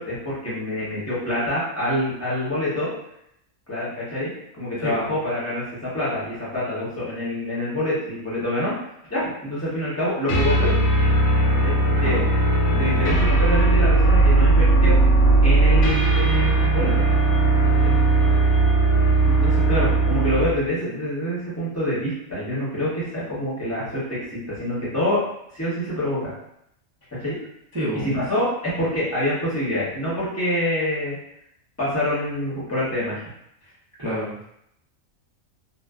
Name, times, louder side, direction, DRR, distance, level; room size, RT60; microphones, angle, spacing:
voice 1, 0.0-2.9 3.7-8.7 9.1-10.8 11.6-12.2 12.8-15.0 15.4-16.9 17.8-17.9 19.3-24.2 24.5-25.2 25.5-26.3 27.2-27.4 28.0-31.2 31.8-33.2, left 1 dB, 15° left, -9 dB, 0.8 m, -26 dB
sound 1, 10.3-20.6, right 2 dB, 65° left, 0.8 m, -18 dB
voice 2, 11.9-12.2 12.7-13.0 27.7-28.1 34.0-34.4, equal, 35° right, -10 dB, 0.4 m, -29 dB
2.6 x 2.2 x 2.3 m, 0.76 s
omnidirectional pair, 1.4 m